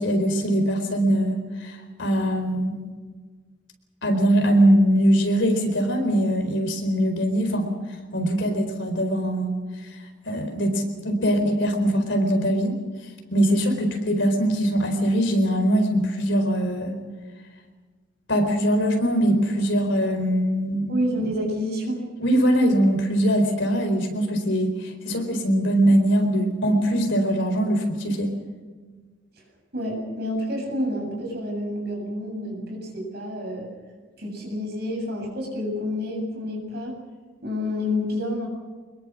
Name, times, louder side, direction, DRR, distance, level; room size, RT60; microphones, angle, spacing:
voice 1, 0.0-2.7 4.0-7.7 8.1-9.6 10.3-12.8 13.3-17.0 18.3-20.9 22.2-28.3, equal, 65° left, 5 dB, 4.5 m, -22 dB
voice 2, 20.9-22.0 29.7-33.7 34.2-37.0 37.4-38.5, left 1 dB, 55° right, 1 dB, 7.9 m, -28 dB
25.0 x 21.5 x 6.3 m, 1.4 s
head